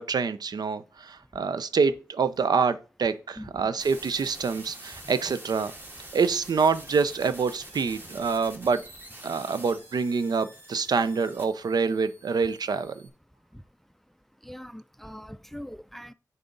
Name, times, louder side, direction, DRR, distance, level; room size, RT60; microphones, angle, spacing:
voice 1, 0.0-2.7 3.0-5.7 6.1-8.8 9.2-13.1, right 5 dB, 80° right, 0.5 m, -26 dB
voice 2, 3.4-3.7 14.5-16.1, equal, 5° left, 0.3 m, -39 dB
sound 1, 3.8-13.1, right 1 dB, 30° right, 1.8 m, -46 dB
9.3 x 4.1 x 3.9 m
wide cardioid pair, 90°, 7 cm